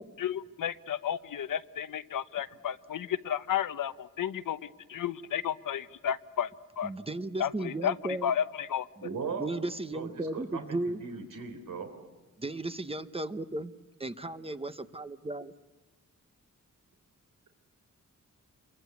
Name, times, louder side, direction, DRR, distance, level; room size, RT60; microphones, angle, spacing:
voice 1, 0.2-6.5 6.8-6.9 7.4-7.9 8.2-8.9, left 9 dB, 85° left, 12 dB, 0.9 m, -32 dB
voice 2, 6.8-8.3 9.0-9.1 9.4-11.0 12.4-13.7 14.0-15.5, right 2 dB, 20° right, 11 dB, 0.8 m, -35 dB
voice 3, 9.0-9.5 9.9-11.9, right 5 dB, 80° right, 6 dB, 3.6 m, -38 dB
27.5 x 23.5 x 8.3 m, 1.1 s
wide cardioid pair, 160°, 32 cm